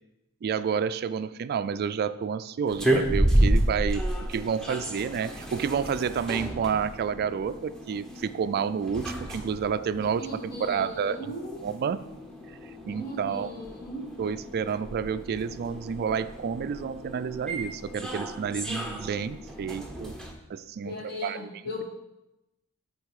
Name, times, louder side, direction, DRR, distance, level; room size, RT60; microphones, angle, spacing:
voice 1, 0.4-11.2 11.6-12.0 12.6-13.5 14.2-20.1 20.5-21.4, right 6 dB, 45° right, 13 dB, 0.3 m, -30 dB
sound 1, 2.7-20.3, right 1 dB, 5° left, 0.9 m, -31 dB
voice 2, 10.0-11.6 12.9-14.1 20.8-21.8, left 1 dB, 50° left, -1 dB, 1.5 m, -38 dB
8.5 x 4.5 x 4.7 m, 0.92 s
head